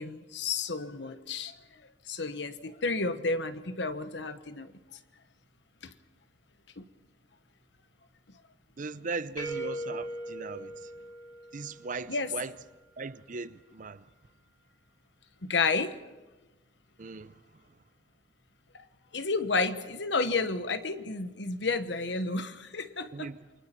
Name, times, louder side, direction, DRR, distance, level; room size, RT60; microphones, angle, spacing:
voice 1, 0.0-1.5 2.1-4.7 5.8-5.9 6.8-6.9 12.1-12.3 15.4-16.0 19.1-23.3, left 3 dB, 75° left, 1.3 m, -31 dB
voice 2, 8.8-10.9 11.5-12.6 13.0-14.1 17.0-17.4 23.1-23.4, right 4 dB, 45° right, 0.6 m, -38 dB
sound 1, 9.4-12.2, equal, 20° left, 5.3 m, -39 dB
28.5 x 23.5 x 4.6 m
head